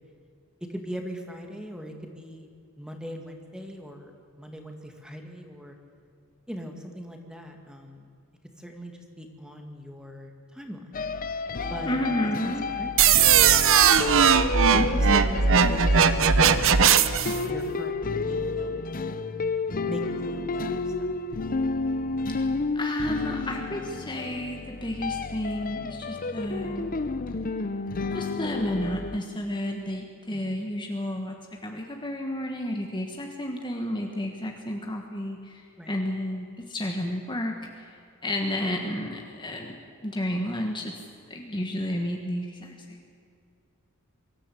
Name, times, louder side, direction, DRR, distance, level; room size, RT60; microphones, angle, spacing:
voice 1, 0.7-2.5 2.8-5.8 6.5-8.1 8.6-11.0 11.7-12.0 12.2-13.4 14.1-16.9 17.4-18.8 19.8-20.9 30.3-30.6 35.8-36.0, equal, 5° right, 3 dB, 2.1 m, -40 dB
sound 1, 10.9-29.2, left 3 dB, 40° left, 0.7 m, -31 dB
voice 2, 11.8-12.6 22.4-26.9 28.1-31.3 31.6-37.9 38.2-39.8 40.0-40.9 41.3-43.1, left 1 dB, 20° left, 2 dB, 1.5 m, -31 dB
sound 2, 13.0-17.4, right 7 dB, 65° right, 0.8 m, -19 dB
23.0 x 14.5 x 8.4 m, 2.4 s
head